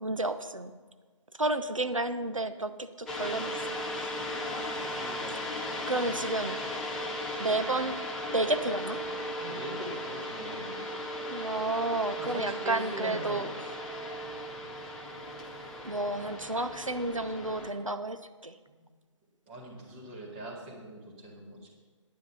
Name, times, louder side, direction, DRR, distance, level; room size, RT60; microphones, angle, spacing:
voice 1, 0.0-0.7 1.4-3.5 4.0-4.1 5.9-6.6 7.4-8.0 8.3-9.0 11.3-13.5 15.8-18.5, right 2 dB, 90° right, 10 dB, 0.8 m, -31 dB
sound 1, 3.1-17.7, left 1 dB, ahead, 0.4 m, -37 dB
voice 2, 4.4-6.2 9.4-10.7 12.1-13.5 18.7-18.8 19.5-21.7, right 2 dB, 20° right, -1 dB, 1.9 m, -42 dB
9.6 x 9.4 x 5.5 m, 1.5 s
figure-of-eight pair, 145°, 16 cm